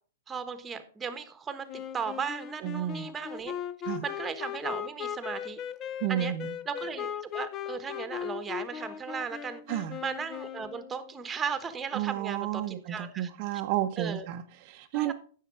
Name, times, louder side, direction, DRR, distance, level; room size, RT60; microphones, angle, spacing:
voice 1, 0.3-3.5 4.0-5.6 6.1-6.3 6.7-9.6 10.0-13.3 14.0-14.3 14.9-15.1, right 6 dB, 15° right, 10 dB, 1.2 m, -36 dB
Wind instrument woodwind instrument, 1.7-11.1, left 9 dB, 30° left, 0.7 m, -38 dB
voice 2, 2.6-3.1 3.9-4.0 6.0-6.5 9.7-10.0 11.9-15.1, right 12 dB, 45° right, 5 dB, 0.7 m, -32 dB
10.0 x 6.6 x 4.9 m, 0.43 s
hypercardioid pair, 125°, 0 cm